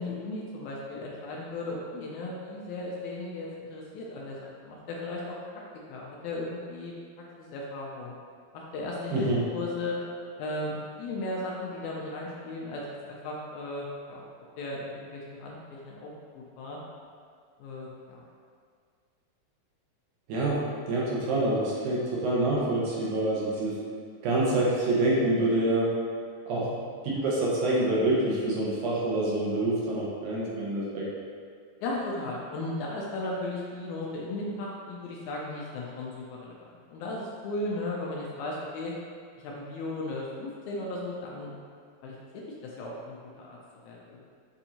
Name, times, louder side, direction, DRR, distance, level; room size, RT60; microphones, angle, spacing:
voice 1, 0.0-5.4 5.9-6.9 7.4-8.1 8.5-10.0 10.4-14.2 14.6-16.8 17.6-18.2 26.6-26.9 31.8-38.9 39.4-41.5 42.0-42.2 42.6-43.6 43.8-44.2, left 2 dB, 80° left, -3 dB, 1.8 m, -36 dB
voice 2, 9.1-9.4 20.3-23.8 24.2-25.9 26.5-26.7 27.1-31.1, right 2 dB, 75° right, -6 dB, 2.3 m, -26 dB
7.0 x 2.6 x 2.8 m, 2.1 s
omnidirectional pair, 3.7 m